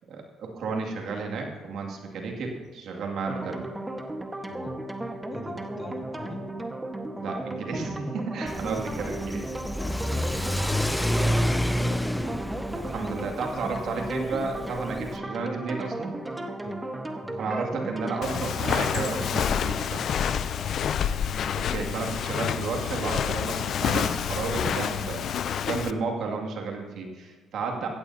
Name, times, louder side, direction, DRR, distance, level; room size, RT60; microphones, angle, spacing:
voice 1, 0.1-3.6 5.9-6.0 7.2-9.5 12.7-16.1 17.4-20.0 21.7-25.3 25.7-27.9, right 4 dB, 70° right, 1 dB, 2.4 m, -32 dB
sound 1, 3.3-19.4, right 1 dB, 15° right, 1.5 m, -35 dB
voice 2, 4.5-4.8 5.3-6.5 10.0-11.7 16.6-16.8 17.2-17.4 20.5-20.8, left 2 dB, 35° left, 2 dB, 2.2 m, -41 dB
Car / Accelerating revving vroom, 8.5-15.2, equal, 5° left, 0.7 m, -29 dB
Walk footsteps, 18.2-25.9, left 8 dB, 65° left, 0.5 m, -28 dB
16.0 x 15.0 x 2.9 m, 1.3 s
supercardioid pair, 70°, 0 cm